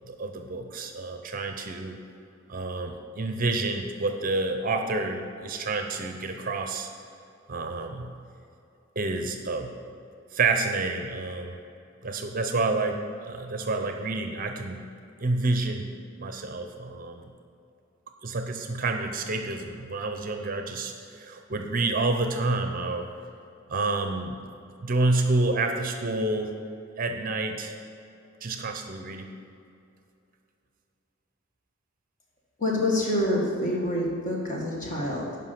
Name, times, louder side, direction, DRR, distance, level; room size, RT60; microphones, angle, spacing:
voice 1, 0.1-2.0 2.5-6.9 7.5-8.1 9.0-9.7 10.3-11.6 12.0-14.9 15.2-15.9 16.2-17.3 18.2-23.1 23.7-24.3 24.8-26.5 27.0-27.8 28.4-29.3, right 3 dB, 40° right, 5 dB, 0.6 m, -29 dB
voice 2, 32.6-35.4, left 1 dB, 40° left, -3 dB, 1.9 m, -27 dB
11.0 x 5.4 x 5.9 m, 2.6 s
head